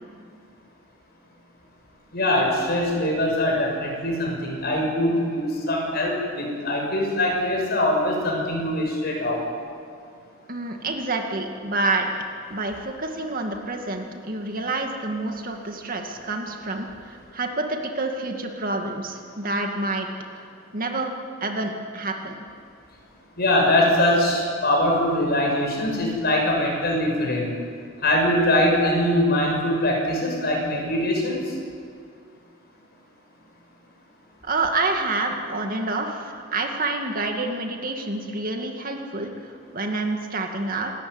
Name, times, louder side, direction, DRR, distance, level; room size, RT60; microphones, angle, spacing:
voice 1, 2.1-9.5 23.4-27.5 28.0-31.4, left 1 dB, 55° left, 0 dB, 6.8 m, -22 dB
voice 2, 10.5-12.1 12.5-20.1 20.3-20.5 20.7-22.4 34.4-40.9, right 2 dB, 45° right, 3 dB, 2.3 m, -28 dB
27.5 x 13.5 x 9.8 m, 2.2 s
head